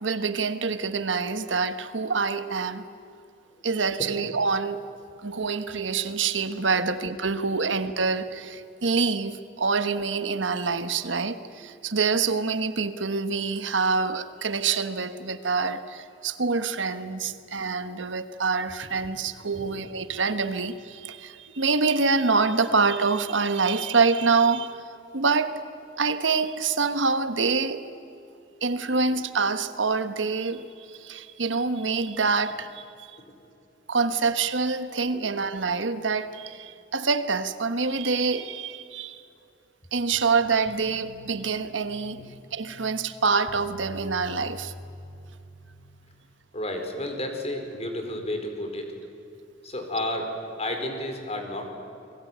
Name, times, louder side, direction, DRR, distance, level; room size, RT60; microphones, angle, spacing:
voice 1, 0.0-2.8 3.6-4.9 5.2-24.8 25.1-25.6 26.0-27.9 28.6-32.8 33.9-39.2 39.9-42.2 42.5-44.7, right 4 dB, 80° right, 11 dB, 1.3 m, -26 dB
sound 1, 40.7-46.3, left 2 dB, 70° left, 5.1 m, -46 dB
voice 2, 46.5-48.9 49.6-51.7, left 1 dB, 35° left, 4 dB, 4.6 m, -32 dB
29.5 x 21.0 x 9.4 m, 2.7 s
head